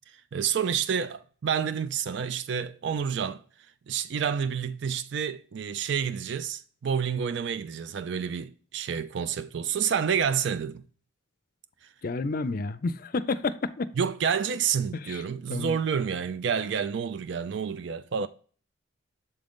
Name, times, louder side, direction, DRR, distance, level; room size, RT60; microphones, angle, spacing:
voice 1, 0.3-3.4 3.9-10.8 14.0-18.3, right 7 dB, 60° right, 0.4 m, -29 dB
voice 2, 12.0-13.9 14.9-15.2 15.5-15.8, left 3 dB, 45° left, 0.4 m, -30 dB
7.7 x 3.8 x 3.5 m
head